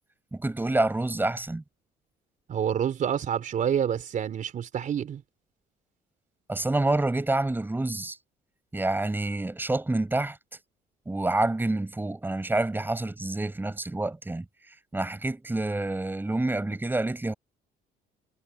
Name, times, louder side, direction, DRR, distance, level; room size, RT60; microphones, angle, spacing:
voice 1, 0.3-1.6 6.5-8.2 8.7-10.4 11.1-14.5 14.9-17.3, right 2 dB, 10° right, 7.4 m, -27 dB
voice 2, 2.5-5.2, right 9 dB, 50° right, 4.1 m, -28 dB
cardioid pair, 110°, 17 cm